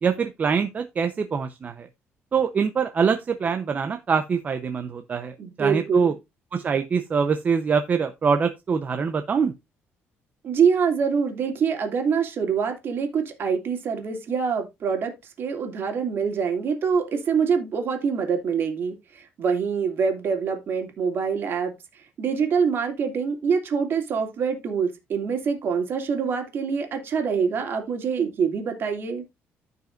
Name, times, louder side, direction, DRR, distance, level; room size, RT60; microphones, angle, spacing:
voice 1, 0.0-1.9 2.3-6.1 6.5-9.5, right 6 dB, 35° right, 0.8 m, -24 dB
voice 2, 5.4-6.1 10.4-29.2, right 6 dB, 50° right, 2.8 m, -25 dB
15.0 x 5.5 x 2.6 m
cardioid pair, 130°, 5 cm